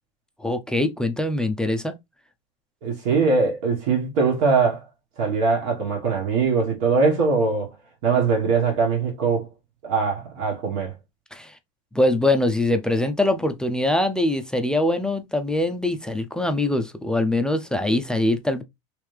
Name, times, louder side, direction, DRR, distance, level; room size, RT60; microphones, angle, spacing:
voice 1, 0.4-2.0 11.3-11.5 11.9-18.6, left 1 dB, 5° left, 0.3 m, -23 dB
voice 2, 2.8-4.8 5.2-7.7 8.0-9.5 9.8-10.9, right 4 dB, 70° right, 1.5 m, -21 dB
3.3 x 3.1 x 3.3 m
supercardioid pair, 140°, 16 cm